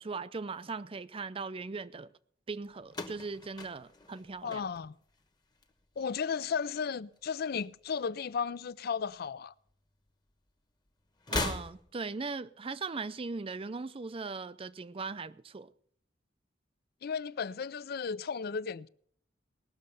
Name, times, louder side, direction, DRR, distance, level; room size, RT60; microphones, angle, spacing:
voice 1, 0.0-2.1 2.5-4.6 11.3-15.7, right 4 dB, 30° right, 0.5 m, -39 dB
sound 1, 2.9-5.2 5.5-6.1 7.2-8.2 8.4-8.5 9.7-9.8 11.2-12.2, left 2 dB, 25° left, 1.2 m, -39 dB
voice 2, 4.4-4.9 6.0-9.5 17.0-18.9, left 6 dB, 55° left, 0.4 m, -34 dB
19.0 x 6.5 x 6.9 m
head